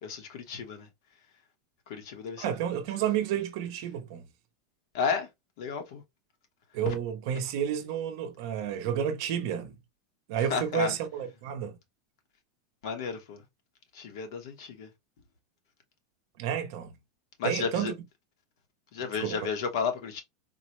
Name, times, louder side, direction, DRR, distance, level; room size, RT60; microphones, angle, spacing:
voice 1, 0.0-0.9 1.9-2.5 4.9-5.3 5.6-6.0 6.9-7.0 10.4-11.0 12.8-13.4 13.9-14.9 17.4-17.9 18.9-20.2, left 5 dB, 55° left, 0.9 m, -32 dB
voice 2, 2.4-4.2 6.7-9.7 10.3-11.7 16.4-16.9 17.4-17.9 19.2-19.4, right 9 dB, 45° right, 0.6 m, -31 dB
3.8 x 2.0 x 2.9 m
supercardioid pair, 180°, 3 cm